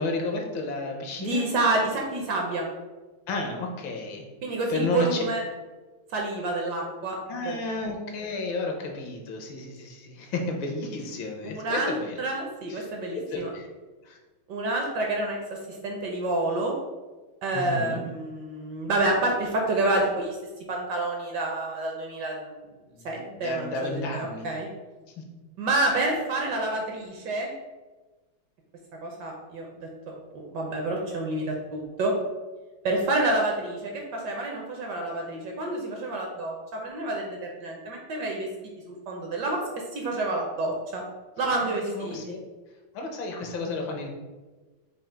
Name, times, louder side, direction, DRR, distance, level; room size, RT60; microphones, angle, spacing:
voice 1, 0.0-1.4 3.3-4.2 4.7-5.2 7.3-12.2 12.7-12.9 13.1-13.7 14.0-14.2 17.5-18.0 22.9-24.5 25.2-25.3 41.6-42.4 42.9-44.1, left 2 dB, 70° left, 2 dB, 1.4 m, -32 dB
voice 2, 1.2-2.7 4.4-5.4 6.1-7.2 7.5-7.6 11.6-13.5 14.5-16.8 17.4-20.4 20.7-22.5 23.0-24.7 25.6-27.5 28.9-29.7 30.1-32.1 32.8-38.5 39.1-41.0 41.4-42.4, right 2 dB, 70° right, 0 dB, 1.1 m, -28 dB
5.0 x 2.4 x 4.4 m, 1.2 s
omnidirectional pair, 2.3 m